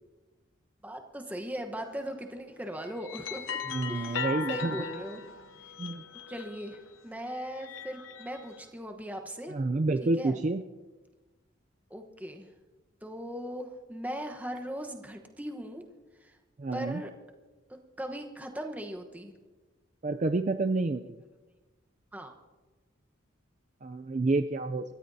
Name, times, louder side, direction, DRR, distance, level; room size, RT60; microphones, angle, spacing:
voice 1, 0.8-3.6 3.9-5.2 6.3-9.6 10.0-10.4 11.9-12.5 13.0-15.8 16.2-16.4 16.7-17.1 17.7-19.4 22.1-22.3, equal, 10° right, 4 dB, 1.1 m, -39 dB
sound 1, 1.8-2.1 2.7-6.9 7.4-8.6, left 5 dB, 80° left, 0.9 m, -38 dB
voice 2, 3.7-4.8 5.8-6.1 9.5-10.6 16.6-17.0 20.0-21.2 23.8-24.8, right 3 dB, 35° right, 7 dB, 0.4 m, -29 dB
29.0 x 14.5 x 2.8 m, 1.3 s
head